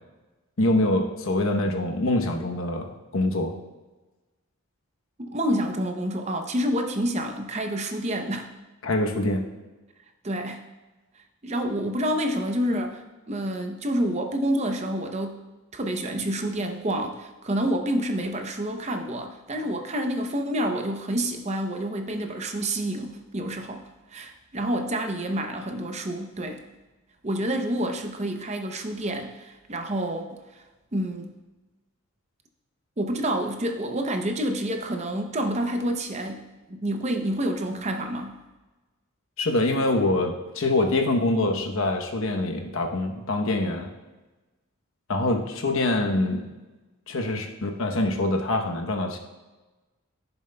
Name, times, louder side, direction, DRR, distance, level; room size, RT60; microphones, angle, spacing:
voice 1, 0.6-3.5 8.8-9.4 39.4-43.9 45.1-46.5 47.1-49.2, left 2 dB, 70° left, 3 dB, 0.9 m, -25 dB
voice 2, 5.2-8.5 10.2-10.6 11.4-15.4 15.7-26.6 27.2-30.6 30.9-31.3 33.0-38.4, right 1 dB, 30° right, 5 dB, 0.6 m, -28 dB
14.5 x 7.0 x 2.2 m, 1.2 s
head